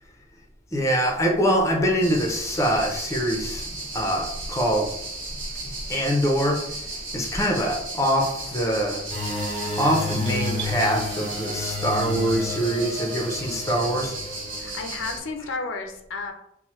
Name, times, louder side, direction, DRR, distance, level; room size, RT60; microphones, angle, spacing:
voice 1, 0.7-4.9 5.9-6.6 7.1-9.0 9.8-14.2, equal, 15° left, 1 dB, 0.4 m, -24 dB
sound 1, 2.0-15.2, right 2 dB, 75° right, 1.1 m, -35 dB
sound 2, 9.1-15.0, left 2 dB, 40° right, 0.9 m, -31 dB
sound 3, 9.6-10.8, right 7 dB, 60° right, 0.5 m, -42 dB
voice 2, 14.6-16.3, left 3 dB, 85° left, 5 dB, 0.4 m, -32 dB
3.0 x 2.0 x 3.0 m, 0.76 s
head